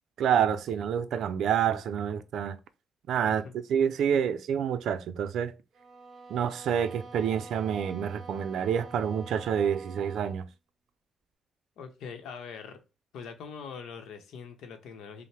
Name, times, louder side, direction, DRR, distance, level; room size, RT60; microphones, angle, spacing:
voice 1, 0.2-2.6 3.1-3.4 3.7-5.5 6.3-10.5, right 8 dB, 65° right, 0.4 m, -28 dB
sound 1, 5.7-10.5, right 3 dB, 25° right, 0.8 m, -47 dB
voice 2, 11.8-12.8 13.1-15.3, left 6 dB, 80° left, 0.8 m, -43 dB
5.4 x 2.1 x 3.3 m
cardioid pair, 180°, 0 cm